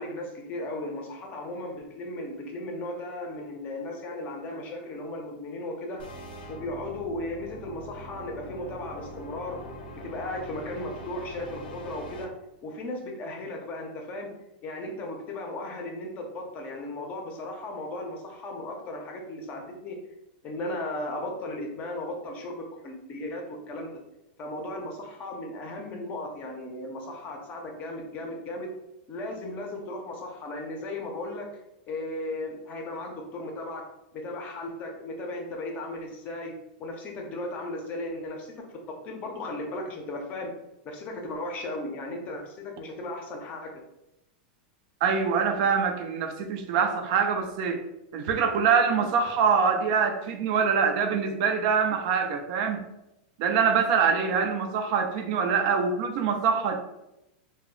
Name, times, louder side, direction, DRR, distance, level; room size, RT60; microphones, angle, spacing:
voice 1, 0.0-6.0 6.5-9.6 10.0-12.3 12.6-14.3 14.6-20.0 20.4-24.0 24.4-28.7 29.1-33.8 34.1-36.5 36.8-40.5 40.8-43.7, left 1 dB, 30° left, 2 dB, 0.5 m, -36 dB
sound 1, 6.0-12.2, equal, 85° left, 0.5 m, -42 dB
voice 2, 45.0-47.8 48.1-52.9 53.4-56.8, right 6 dB, 50° right, 6 dB, 0.3 m, -24 dB
2.1 x 2.0 x 3.6 m, 0.89 s
supercardioid pair, 145°, 5 cm